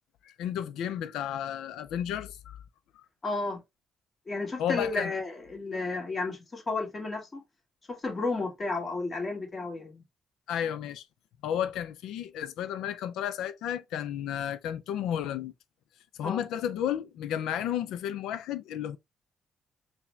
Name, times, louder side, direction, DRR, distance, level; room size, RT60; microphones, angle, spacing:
voice 1, 0.2-2.6 4.6-5.1 10.5-11.0 11.4-15.5 16.2-19.0, left 10 dB, 85° left, 0.4 m, -32 dB
voice 2, 3.2-3.6 4.3-7.4 7.9-10.0 16.2-16.4, left 3 dB, 35° left, 1.8 m, -32 dB
4.8 x 2.2 x 3.2 m
cardioid pair, 90°, 0 cm